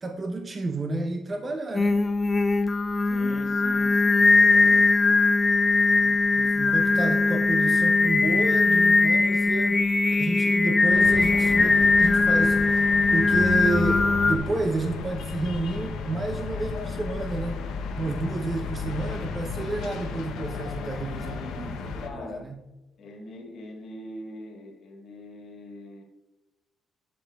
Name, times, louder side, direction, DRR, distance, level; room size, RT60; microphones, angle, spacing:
voice 1, 0.0-2.0 6.0-9.8 10.2-12.9 13.1-17.6 18.0-22.6, right 2 dB, 30° right, 4 dB, 0.6 m, -31 dB
Singing, 1.7-14.4, left 3 dB, 25° left, 0.4 m, -20 dB
voice 2, 3.0-5.1 6.3-6.6 22.0-22.5 23.0-26.0, left 2 dB, 65° left, 1 dB, 1.6 m, -42 dB
sound 1, 10.9-22.1, left 5 dB, 85° left, 0.7 m, -33 dB
11.0 x 5.2 x 2.3 m, 1.1 s
cardioid pair, 90°, 0 cm